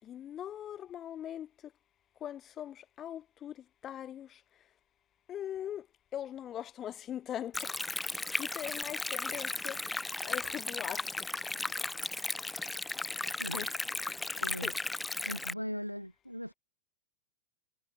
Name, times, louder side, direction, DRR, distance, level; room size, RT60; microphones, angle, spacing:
voice 1, 0.0-1.5 2.2-3.5 3.8-4.3 5.3-5.9 6.1-7.8 8.4-9.8 10.2-11.0 13.5-13.7 14.1-14.2 14.6-14.7, left 10 dB, 30° left, 7.0 m, -40 dB
Stream, 7.5-15.5, left 2 dB, 5° left, 2.2 m, -36 dB
voice 2, 14.4-14.7 15.2-16.5, equal, 90° left, 2.2 m, -39 dB
figure-of-eight pair, 90°, 0 cm